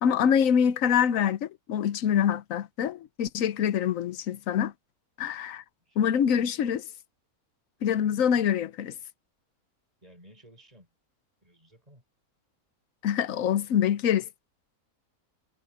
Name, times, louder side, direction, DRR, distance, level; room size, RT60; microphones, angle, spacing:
voice 1, 0.0-4.7 5.2-5.6 6.0-6.8 7.8-8.9 13.0-14.2, left 8 dB, 65° left, 1.1 m, -25 dB
voice 2, 5.8-6.1 8.2-8.5 10.0-10.9 11.4-12.0, equal, 25° right, 6.8 m, -56 dB
omnidirectional pair, 1.6 m